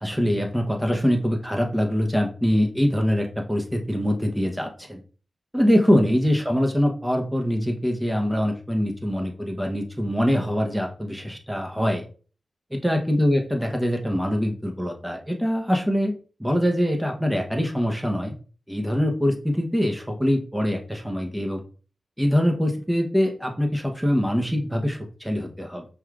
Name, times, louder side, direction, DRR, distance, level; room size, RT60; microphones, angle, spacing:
voice 1, 0.0-5.0 5.5-12.0 12.8-16.1 16.4-18.3 18.7-21.6 22.2-25.8, equal, 5° right, 2 dB, 1.0 m, -23 dB
5.4 x 3.3 x 2.4 m, 0.39 s
cardioid pair, 60°, 0 cm